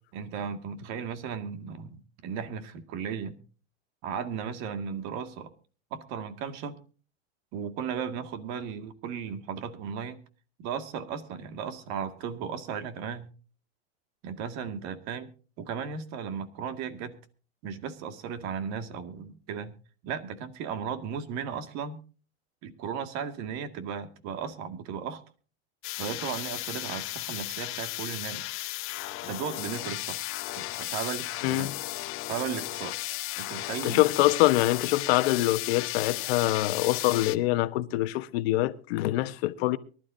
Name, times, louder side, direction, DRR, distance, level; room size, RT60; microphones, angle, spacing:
voice 1, 0.1-3.4 4.0-5.5 5.9-6.8 7.5-10.2 10.6-13.3 14.2-15.3 15.6-17.2 17.6-19.7 20.0-22.0 22.6-25.2 26.0-28.5 29.2-30.3 30.6-31.7 32.3-32.9 33.4-34.0 37.9-38.0, right 7 dB, 55° right, 2.1 m, -35 dB
sound 1, 25.8-37.4, left 18 dB, 40° left, 0.8 m, -35 dB
voice 2, 33.8-39.8, left 17 dB, 70° left, 1.2 m, -25 dB
23.5 x 12.0 x 2.7 m
supercardioid pair, 120°, 32 cm